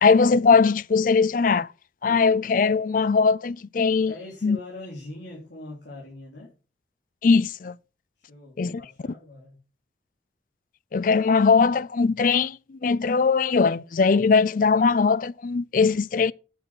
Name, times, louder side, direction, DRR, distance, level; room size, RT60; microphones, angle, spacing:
voice 1, 0.0-1.7 2.0-4.1 4.4-4.6 7.2-7.8 8.6-8.8 10.9-16.3, left 5 dB, 50° left, 0.4 m, -20 dB
voice 2, 4.0-6.5 8.2-9.6, left 2 dB, 85° left, 3.1 m, -42 dB
8.8 x 7.1 x 6.0 m
head